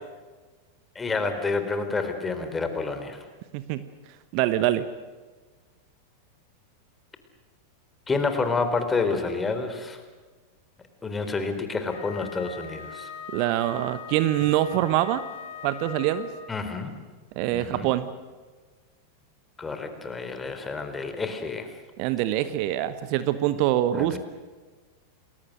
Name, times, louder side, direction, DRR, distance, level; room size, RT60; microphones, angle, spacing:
voice 1, 1.0-3.2 8.1-10.0 11.0-13.1 16.5-17.0 17.5-17.9 19.6-21.7 23.9-24.2, left 4 dB, 15° left, 8 dB, 3.5 m, -29 dB
voice 2, 4.3-4.8 13.3-15.2 15.6-16.3 17.4-18.1 22.0-24.2, right 13 dB, 45° right, 13 dB, 1.1 m, -24 dB
Wind instrument woodwind instrument, 11.9-16.6, left 7 dB, 55° left, 2.7 m, -41 dB
30.0 x 21.5 x 6.6 m, 1.3 s
figure-of-eight pair, 90°, 0 cm